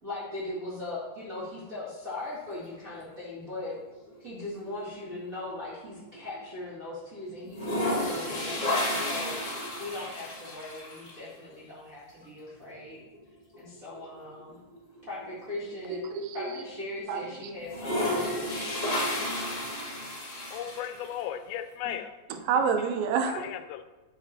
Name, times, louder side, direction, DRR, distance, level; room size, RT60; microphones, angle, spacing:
voice 1, 0.0-3.8 4.2-9.3 9.8-13.1 13.6-14.6 15.1-16.0 16.3-18.6 21.8-21.9, left 2 dB, 40° right, -9 dB, 1.2 m, -39 dB
sound 1, 3.4-4.2 4.6-6.6 6.8-6.9 7.4-11.1 12.6-12.7 13.1-13.2 13.5-15.9 16.4-16.5 17.6-21.2, left 1 dB, 30° left, 1.5 m, -32 dB
voice 2, 15.9-16.7 17.1-17.5 22.5-23.5, right 6 dB, 80° right, 7 dB, 2.9 m, -28 dB
voice 3, 20.5-22.2 23.3-23.8, left 10 dB, 85° left, 9 dB, 2.8 m, -36 dB
9.8 x 5.9 x 4.4 m, 1.2 s
omnidirectional pair, 5.0 m